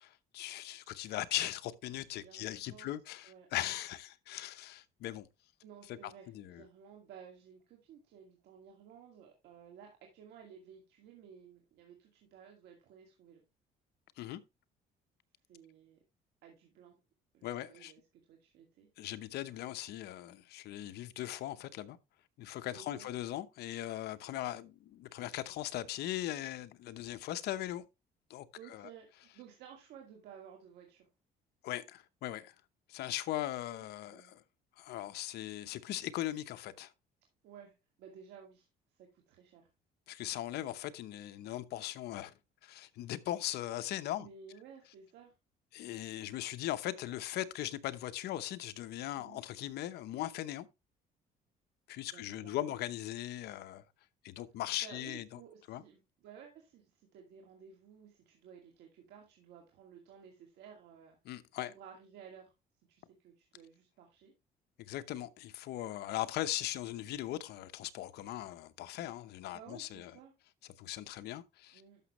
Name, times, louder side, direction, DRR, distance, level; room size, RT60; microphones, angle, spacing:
voice 1, 0.0-5.3 5.9-6.6 14.2-14.4 17.4-17.9 19.0-22.0 22.4-27.8 28.3-28.9 31.6-32.5 32.9-34.4 34.8-36.9 40.1-42.3 42.6-44.3 45.7-50.7 51.9-53.8 54.2-55.3 55.7-55.8 61.2-61.7 64.9-70.1 70.8-71.8, left 14 dB, 75° left, 0.8 m, -39 dB
voice 2, 2.1-2.9 3.2-3.5 5.6-13.4 15.5-16.0 16.4-17.0 17.3-18.9 22.7-23.1 28.6-31.0 34.1-34.3 37.4-38.7 38.9-39.7 44.2-45.3 49.1-49.4 52.0-52.7 54.8-61.2 61.6-62.5 62.9-64.3 69.5-70.3 71.7-72.0, right 7 dB, 80° right, 2.2 m, -55 dB
12.5 x 6.1 x 3.1 m
cardioid pair, 110°, 17 cm